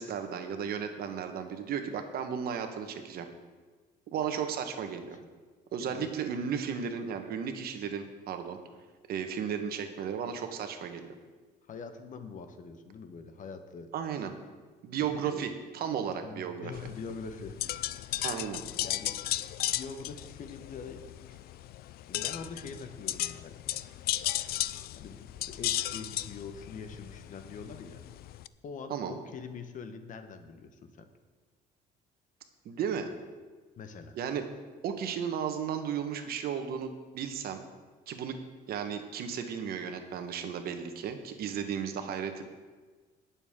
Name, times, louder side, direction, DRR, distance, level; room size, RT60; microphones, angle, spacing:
voice 1, 0.0-3.3 4.1-5.2 5.7-8.6 9.1-11.1 13.9-14.3 14.8-16.7 18.2-18.6 28.9-29.1 32.6-33.1 34.1-34.4 34.8-37.6 38.1-38.3 38.7-42.4, right 7 dB, 65° right, 7 dB, 1.1 m, -34 dB
voice 2, 5.8-6.1 11.7-13.9 15.0-15.4 16.2-17.6 18.8-19.2 19.7-21.0 22.1-23.6 24.4-28.0 28.6-31.1 33.8-34.2, left 5 dB, 50° left, 8 dB, 1.1 m, -44 dB
sound 1, 16.7-28.5, left 14 dB, 65° left, 0.4 m, -35 dB
19.0 x 7.1 x 3.7 m, 1.4 s
cardioid pair, 110°, 17 cm